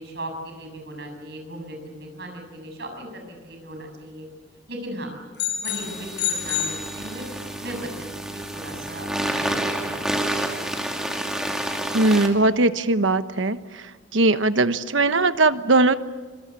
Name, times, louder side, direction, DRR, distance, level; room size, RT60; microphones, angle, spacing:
voice 1, 0.0-4.3 4.7-5.1 5.6-7.2 7.6-9.5 9.7-10.5 10.9-11.0, right 1 dB, 60° right, 4 dB, 7.1 m, -37 dB
sound 1, 5.4-7.6, left 9 dB, 60° left, 6.6 m, -29 dB
sound 2, 5.7-12.3, right 1 dB, 5° right, 2.7 m, -29 dB
voice 2, 11.9-13.6 14.1-15.9, right 2 dB, 85° right, 11 dB, 1.2 m, -19 dB
26.5 x 22.0 x 8.4 m, 1.3 s
head